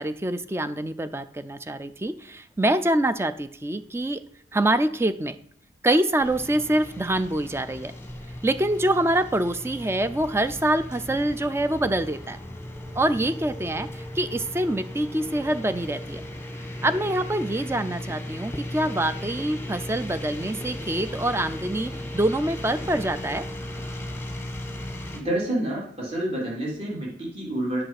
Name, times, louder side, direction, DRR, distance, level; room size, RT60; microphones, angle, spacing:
voice 1, 0.0-4.2 4.5-5.4 5.8-7.9 8.4-12.4 13.0-16.2 16.8-23.4, right 1 dB, 15° right, 12 dB, 0.4 m, -25 dB
sound 1, 6.2-25.2, left 1 dB, 15° left, 1.3 m, -36 dB
voice 2, 25.1-27.8, right 1 dB, 30° right, -4 dB, 3.7 m, -28 dB
7.9 x 6.7 x 5.8 m, 0.63 s
head